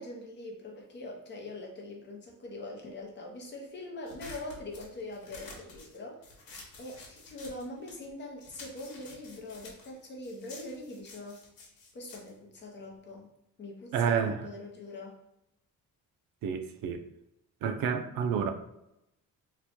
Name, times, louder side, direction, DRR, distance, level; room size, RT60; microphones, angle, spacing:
voice 1, 0.0-6.3 6.8-11.4 11.9-13.3 13.6-15.2, left 2 dB, 30° left, -1 dB, 0.7 m, -43 dB
sound 1, 4.1-8.1 8.4-13.2, left 3 dB, 75° left, 1.0 m, -50 dB
voice 2, 13.9-14.5 16.4-17.1 17.6-18.5, right 7 dB, 80° right, 8 dB, 0.5 m, -29 dB
3.0 x 2.2 x 4.2 m, 0.85 s
cardioid pair, 175°, 34 cm